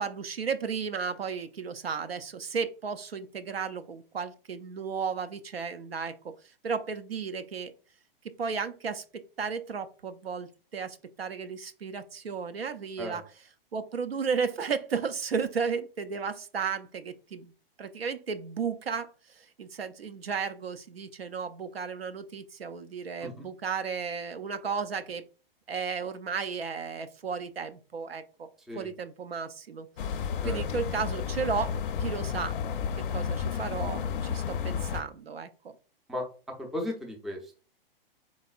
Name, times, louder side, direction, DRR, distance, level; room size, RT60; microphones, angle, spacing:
voice 1, 0.0-6.3 6.6-7.7 8.4-13.2 13.7-17.5 17.8-25.2 25.7-28.5 28.7-30.2 30.4-32.6 33.1-35.7, right 6 dB, 85° right, 10 dB, 0.5 m, -34 dB
sound 1, 30.0-35.0, left 7 dB, 60° left, 0.4 m, -32 dB
voice 2, 36.6-37.6, left 1 dB, ahead, 2 dB, 0.3 m, -35 dB
4.0 x 3.4 x 2.4 m, 0.37 s
figure-of-eight pair, 105°, 29 cm